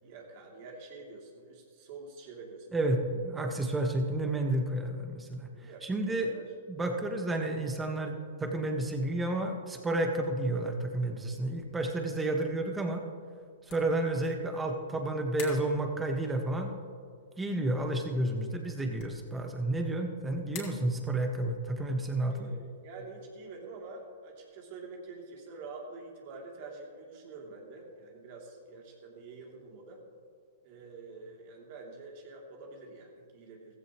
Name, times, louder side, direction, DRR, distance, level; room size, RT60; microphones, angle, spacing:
voice 1, 0.0-2.9 5.5-6.4 22.3-30.0 30.6-33.8, right 3 dB, 50° right, -1 dB, 3.0 m, -47 dB
voice 2, 3.2-5.5 5.8-6.3 6.7-13.0 13.7-16.7 17.4-22.5, right 2 dB, 10° right, 3 dB, 1.5 m, -31 dB
sound 1, 11.0-25.1, left 7 dB, 45° left, 3.3 m, -54 dB
15.5 x 14.5 x 3.2 m, 2.1 s
hypercardioid pair, 125°, 0 cm